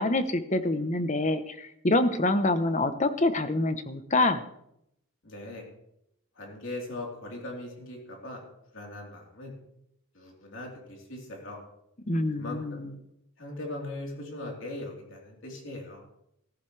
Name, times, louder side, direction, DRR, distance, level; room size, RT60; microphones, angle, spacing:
voice 1, 0.0-4.4 12.1-12.9, left 2 dB, 35° left, 10 dB, 0.9 m, -26 dB
voice 2, 5.2-5.7 6.4-8.4 8.7-9.5 10.1-11.6 12.4-12.9 13.4-16.0, left 2 dB, 60° left, -1 dB, 3.7 m, -40 dB
14.5 x 14.5 x 3.3 m, 0.77 s
head